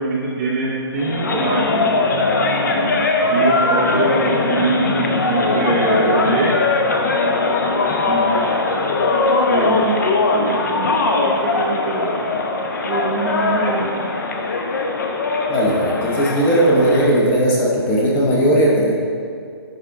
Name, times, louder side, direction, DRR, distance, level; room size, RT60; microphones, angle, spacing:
voice 1, 0.0-2.0 3.3-6.7 8.1-8.4 9.5-12.2 12.8-14.2, right 3 dB, 15° right, -6 dB, 0.5 m, -23 dB
sound 1, 1.0-17.2, left 3 dB, 45° left, 0.8 m, -20 dB
voice 2, 15.5-19.0, right 1 dB, 10° left, -4 dB, 0.8 m, -17 dB
10.5 x 5.0 x 3.6 m, 2.3 s
hypercardioid pair, 165°, 14 cm